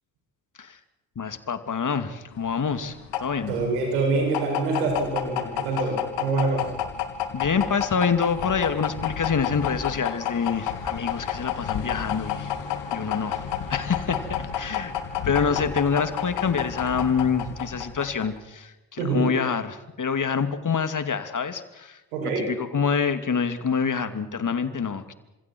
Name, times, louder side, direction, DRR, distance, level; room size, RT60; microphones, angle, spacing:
voice 1, 1.2-3.6 7.3-12.5 12.9-13.4 13.7-14.9 15.2-25.1, left 6 dB, 40° left, 10 dB, 2.8 m, -26 dB
sound 1, 2.4-18.4, left 9 dB, 70° left, 3.0 m, -31 dB
voice 2, 3.5-6.7 19.0-19.3 22.1-22.5, right 3 dB, 85° right, 1 dB, 7.6 m, -25 dB
30.0 x 27.0 x 4.7 m, 1.0 s
hypercardioid pair, 40°, 45 cm